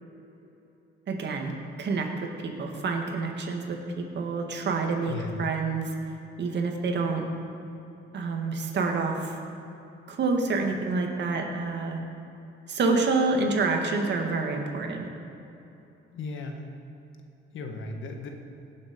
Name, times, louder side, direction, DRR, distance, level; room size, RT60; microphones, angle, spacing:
voice 1, 1.1-1.5 1.8-5.9 6.4-7.3 8.1-9.4 10.1-12.0 12.7-15.1, right 3 dB, 60° right, 2 dB, 1.9 m, -28 dB
voice 2, 5.1-5.4 16.1-16.6 17.5-18.3, left 3 dB, 75° left, 4 dB, 1.6 m, -36 dB
17.5 x 7.5 x 5.3 m, 2.9 s
cardioid pair, 90°, 20 cm